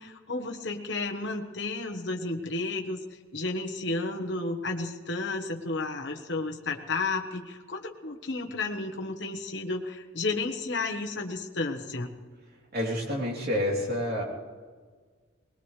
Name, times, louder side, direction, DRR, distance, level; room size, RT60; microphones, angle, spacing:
voice 1, 0.0-3.0 3.3-12.2, left 3 dB, 60° left, 2 dB, 1.3 m, -32 dB
voice 2, 12.7-14.2, left 1 dB, 50° right, -2 dB, 3.4 m, -28 dB
21.0 x 20.5 x 3.3 m, 1.5 s
head